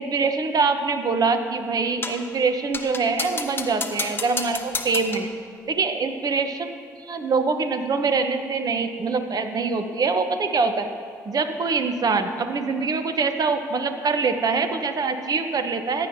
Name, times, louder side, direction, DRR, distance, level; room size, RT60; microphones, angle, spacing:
voice 1, 0.0-5.3 5.7-6.8 7.1-10.9 11.3-16.1, right 4 dB, 45° right, 8 dB, 0.9 m, -24 dB
sound 1, 2.0-2.3 2.7-5.3, left 3 dB, 25° left, 0.9 m, -31 dB
15.5 x 10.0 x 2.7 m, 2.3 s
hypercardioid pair, 45°, 9 cm